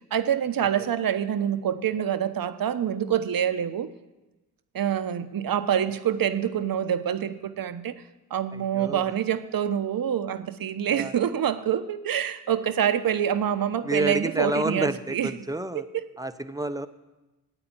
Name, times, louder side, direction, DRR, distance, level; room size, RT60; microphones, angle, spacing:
voice 1, 0.1-3.9 4.7-7.9 8.3-15.3 15.7-16.1, right 9 dB, 55° right, 11 dB, 1.0 m, -26 dB
voice 2, 8.5-9.0 10.9-11.1 13.8-15.8 16.2-16.9, right 1 dB, 10° right, 11 dB, 0.8 m, -29 dB
9.9 x 8.8 x 8.8 m, 1.1 s
supercardioid pair, 60°, 42 cm